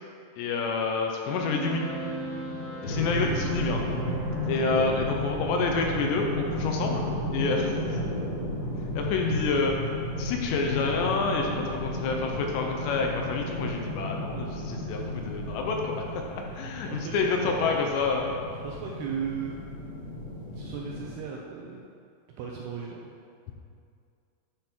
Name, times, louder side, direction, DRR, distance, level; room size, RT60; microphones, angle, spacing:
voice 1, 0.4-1.8 2.8-3.8 4.5-7.0 7.3-7.7 9.0-9.8 10.2-18.3, left 4 dB, 80° left, 1 dB, 2.8 m, -28 dB
sound 1, 1.4-21.3, right 1 dB, 45° right, 2.7 m, -43 dB
sound 2, 2.8-21.1, left 1 dB, 40° left, 2.4 m, -33 dB
voice 2, 16.9-17.8 18.6-19.6 20.5-21.8 22.4-23.1, right 6 dB, 80° right, -2 dB, 2.4 m, -36 dB
10.0 x 5.5 x 4.4 m, 2.3 s
omnidirectional pair, 5.3 m